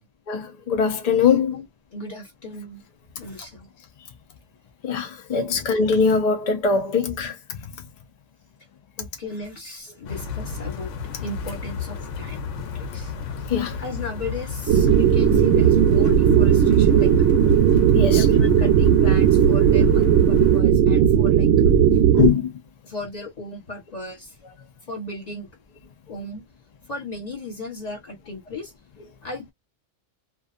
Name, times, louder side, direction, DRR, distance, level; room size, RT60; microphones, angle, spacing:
voice 1, 0.3-1.6 4.8-7.6 13.5-13.8 17.9-18.3 22.1-22.5, left 5 dB, 60° left, 0.4 m, -21 dB
voice 2, 1.9-2.8 3.1-3.7 5.5-5.6 9.0-10.9 11.2-13.1 13.8-17.1 18.1-21.5 22.8-24.4 24.9-25.5 26.1-26.4 26.9-28.7 29.2-29.5, left 2 dB, 35° left, 1.0 m, -36 dB
sound 1, 10.1-20.6, left 6 dB, 80° left, 1.0 m, -34 dB
sound 2, 14.7-22.3, right 8 dB, 70° right, 0.9 m, -16 dB
2.5 x 2.4 x 2.4 m
omnidirectional pair, 1.3 m